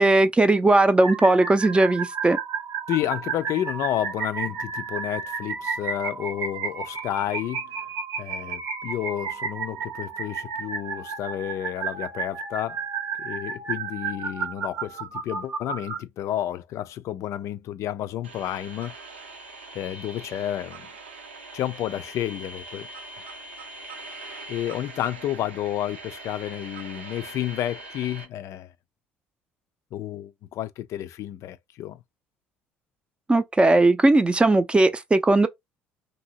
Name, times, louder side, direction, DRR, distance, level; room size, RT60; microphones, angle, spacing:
voice 1, 0.0-2.4 33.3-35.5, right 2 dB, 15° right, 0.5 m, -18 dB
sound 1, 1.0-16.0, right 5 dB, 55° right, 0.8 m, -32 dB
voice 2, 2.9-7.8 8.2-12.8 13.2-18.9 19.7-20.9 21.5-22.9 24.5-28.7 29.9-32.0, left 12 dB, 55° left, 0.3 m, -31 dB
sound 2, 18.2-28.2, right 3 dB, 85° right, 0.8 m, -42 dB
2.7 x 2.6 x 2.8 m
hypercardioid pair, 60°, 6 cm